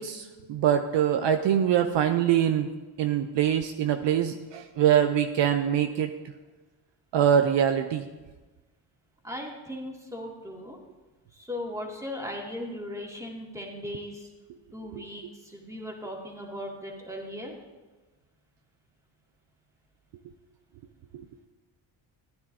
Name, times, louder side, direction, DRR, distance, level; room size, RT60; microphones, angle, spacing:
voice 1, 0.0-2.7 3.0-6.1 7.1-8.1, right 9 dB, 60° right, 7 dB, 0.7 m, -24 dB
voice 2, 9.2-10.8 11.3-14.3 14.7-17.6, left 1 dB, 5° right, -1 dB, 2.2 m, -38 dB
14.0 x 9.5 x 2.7 m, 1.2 s
cardioid pair, 75°, 50 cm